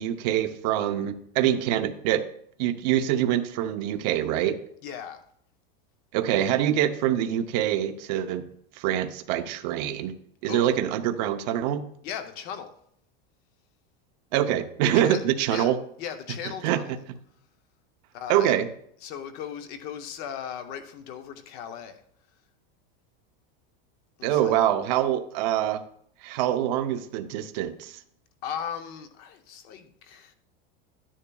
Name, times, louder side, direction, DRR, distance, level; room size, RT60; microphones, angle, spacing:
voice 1, 0.0-2.2 2.6-4.6 6.1-8.4 8.8-10.1 10.4-11.8 14.3-15.8 16.6-16.8 18.3-18.7 24.2-25.8 26.2-28.0, right 11 dB, 45° right, 0.7 m, -25 dB
voice 2, 4.8-5.2 10.5-10.7 12.0-12.7 14.8-15.7 16.0-17.0 18.1-18.5 19.0-22.0 24.2-24.6 28.4-30.3, left 8 dB, 30° left, 0.6 m, -37 dB
11.5 x 10.0 x 2.3 m
supercardioid pair, 175°, 30 cm